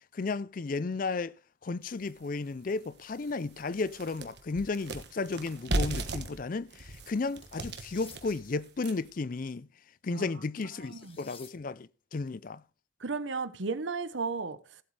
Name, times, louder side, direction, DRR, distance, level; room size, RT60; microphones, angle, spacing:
voice 1, 0.1-1.3 1.6-9.7 10.0-12.6, left 3 dB, 45° left, 0.5 m, -34 dB
sound 1, 2.1-2.2 2.7-2.8 3.1-9.2, right 2 dB, 60° right, 1.4 m, -36 dB
sound 2, 7.4-8.2 10.6-11.5, left 6 dB, 30° left, 1.5 m, -53 dB
voice 2, 13.0-14.6, right 4 dB, 75° right, 1.0 m, -34 dB
17.5 x 8.2 x 3.3 m
head